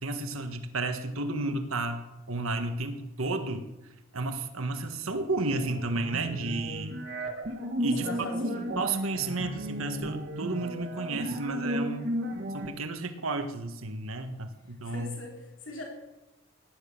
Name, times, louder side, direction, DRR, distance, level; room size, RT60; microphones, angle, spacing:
voice 1, 0.0-3.7 4.1-7.0 7.8-8.1 8.8-12.1 12.5-15.2, right 2 dB, 80° right, 7 dB, 1.5 m, -32 dB
sound 1, 5.5-12.7, equal, 50° right, 1.9 m, -34 dB
voice 2, 8.0-8.8 14.9-15.8, left 2 dB, 65° left, 0 dB, 3.2 m, -40 dB
17.5 x 11.0 x 7.1 m, 0.98 s
head